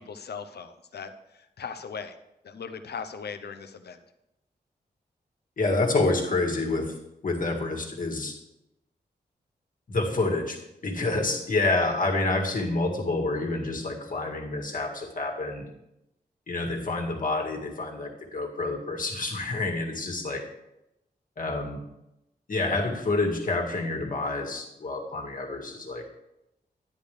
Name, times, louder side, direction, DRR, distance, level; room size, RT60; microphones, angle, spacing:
voice 1, 0.0-2.2 2.4-4.0, left 6 dB, 75° left, 9 dB, 0.8 m, -39 dB
voice 2, 5.6-7.0 7.2-8.4 9.9-15.7 16.5-20.5 21.4-21.8 22.5-26.1, left 2 dB, 55° left, 1 dB, 1.8 m, -28 dB
10.5 x 9.9 x 3.4 m, 0.88 s
wide cardioid pair, 85°, 17 cm